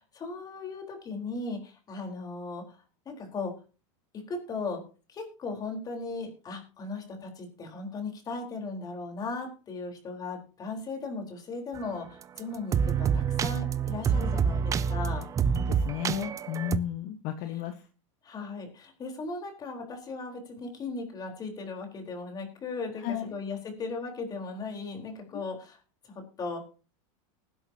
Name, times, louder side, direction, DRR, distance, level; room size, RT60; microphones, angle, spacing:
voice 1, 0.1-2.8 3.1-3.5 4.3-4.8 5.1-15.2 18.2-25.8 26.1-26.6, left 3 dB, 25° left, 3 dB, 4.1 m, -37 dB
sound 1, 11.8-11.9 12.4-12.5 12.7-16.8, right 7 dB, 20° right, 0.5 m, -27 dB
voice 2, 15.5-17.7 23.0-23.3 25.3-25.4, left 11 dB, 50° left, 7 dB, 1.3 m, -33 dB
19.0 x 11.0 x 2.9 m, 0.35 s
supercardioid pair, 145°, 17 cm